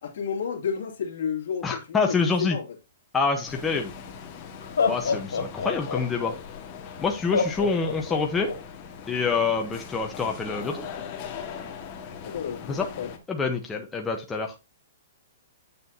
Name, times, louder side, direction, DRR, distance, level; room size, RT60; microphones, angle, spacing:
voice 1, 0.0-2.8 12.2-13.1, left 7 dB, 65° left, 2.3 m, -31 dB
voice 2, 1.6-2.6 3.1-3.9 4.9-6.3 7.0-8.5 9.1-10.8 12.7-12.9 13.3-14.5, left 4 dB, 10° left, 0.9 m, -26 dB
sound 1, 3.5-13.2, left 7 dB, 35° left, 1.5 m, -40 dB
Laughter, 4.6-6.3 7.3-8.5, left 5 dB, 90° left, 2.0 m, -26 dB
8.4 x 6.8 x 2.7 m
hypercardioid pair, 150°, 0 cm